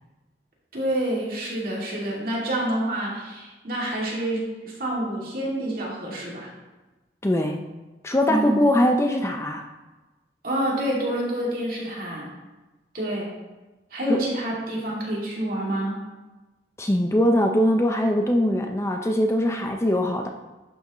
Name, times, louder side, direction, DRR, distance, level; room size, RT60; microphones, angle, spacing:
voice 1, 0.7-6.5 8.3-8.6 10.4-12.3 12.9-13.3 13.9-15.9, right 1 dB, 55° right, -4 dB, 2.4 m, -28 dB
voice 2, 7.2-7.6 8.0-9.7 14.1-14.2 16.8-20.3, left 1 dB, 15° left, 3 dB, 0.5 m, -21 dB
11.5 x 6.2 x 3.0 m, 1.1 s
head